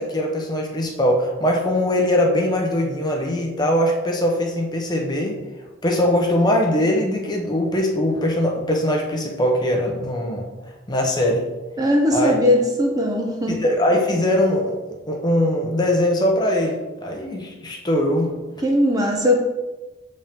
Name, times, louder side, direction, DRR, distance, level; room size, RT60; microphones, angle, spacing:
voice 1, 0.0-5.4 5.8-10.5 10.9-11.5 12.1-12.3 13.6-14.8 15.1-18.3, left 1 dB, 20° left, 0 dB, 0.9 m, -21 dB
voice 2, 11.8-13.6 18.6-19.4, left 1 dB, 20° right, 0 dB, 0.7 m, -19 dB
7.2 x 5.2 x 3.7 m, 1.2 s
head